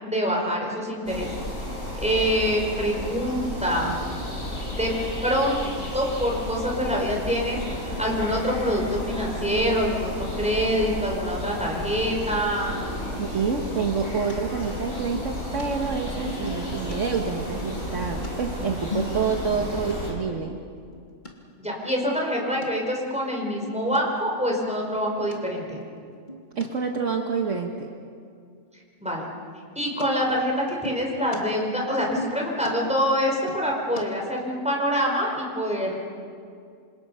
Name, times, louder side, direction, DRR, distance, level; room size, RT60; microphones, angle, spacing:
voice 1, 0.0-1.3 2.0-4.0 4.8-4.9 5.2-12.8 21.6-25.8 29.0-29.2 29.7-36.0, equal, 5° right, -1 dB, 4.9 m, -25 dB
sound 1, 1.1-20.1, left 1 dB, 80° left, 5.4 m, -33 dB
voice 2, 13.2-20.6 26.6-27.9, right 5 dB, 60° right, 3 dB, 1.7 m, -28 dB
sound 2, 14.3-14.4 14.9-15.7 16.2-17.0 17.6-19.6 19.9-20.0 20.4-20.5 20.8-21.3 21.8-22.1 22.6-22.7 23.1-23.2 23.5-24.0 24.4-24.8 25.3-25.4 25.8-26.7 30.0-30.1 30.4-31.4 31.7-34.0, left 1 dB, 35° left, 2.6 m, -37 dB
27.0 x 26.5 x 5.6 m, 2.3 s
omnidirectional pair, 1.4 m